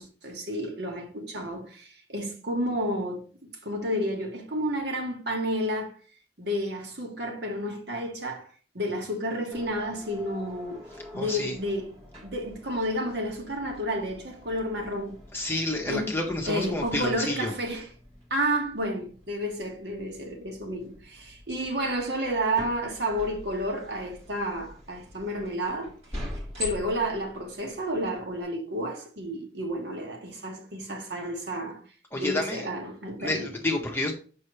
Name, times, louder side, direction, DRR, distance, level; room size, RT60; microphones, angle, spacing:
voice 1, 0.0-5.9 6.4-8.5 8.7-10.8 11.1-11.9 12.2-15.2 15.8-16.2 16.4-17.9 18.3-25.9 26.6-31.8 32.2-33.5, equal, 65° right, 1.5 m, -31 dB
sound 1, 9.5-28.4, left 1 dB, 30° right, 1.7 m, -45 dB
voice 2, 11.1-11.5 15.3-17.5 32.1-32.7 33.2-34.1, left 2 dB, 10° left, 1.0 m, -29 dB
6.3 x 5.5 x 3.2 m
head